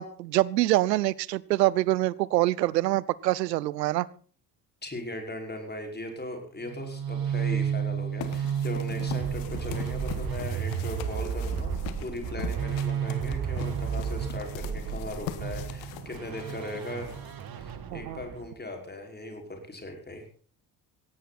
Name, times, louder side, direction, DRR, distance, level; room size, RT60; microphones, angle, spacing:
voice 1, 0.0-4.1 17.9-18.2, right 16 dB, 80° right, 23 dB, 0.7 m, -25 dB
voice 2, 4.8-17.2 17.5-20.2, left 1 dB, 20° left, 3 dB, 5.4 m, -38 dB
sound 1, 6.6-18.5, right 7 dB, 45° right, 2.2 m, -32 dB
sound 2, 8.2-17.7, left 11 dB, 65° left, 1.9 m, -42 dB
18.0 x 15.5 x 4.3 m, 0.42 s
figure-of-eight pair, 50°, 49 cm